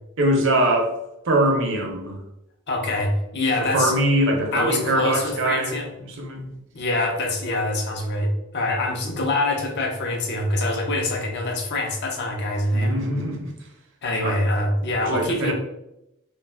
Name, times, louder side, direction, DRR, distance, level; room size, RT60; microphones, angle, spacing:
voice 1, 0.2-1.0 1.2-2.2 3.6-6.5 12.7-13.5 14.2-14.4 15.0-15.5, right 1 dB, 60° right, 2 dB, 0.6 m, -23 dB
voice 2, 2.7-3.9 4.5-5.9 6.7-13.0 14.0-15.5, left 2 dB, 55° left, 2 dB, 0.6 m, -24 dB
2.4 x 2.3 x 3.3 m, 0.86 s
head